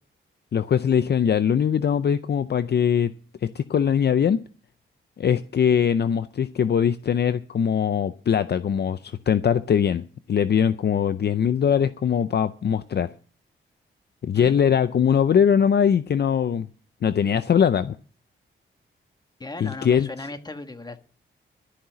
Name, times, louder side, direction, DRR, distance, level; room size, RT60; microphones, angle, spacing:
voice 1, 0.5-3.1 3.4-4.4 5.2-13.1 14.2-16.7 17.0-18.0 19.6-20.1, left 8 dB, 50° left, 0.5 m, -21 dB
voice 2, 19.4-21.0, left 2 dB, 20° left, 1.5 m, -36 dB
13.0 x 5.6 x 9.2 m
cardioid pair, 85°, 21 cm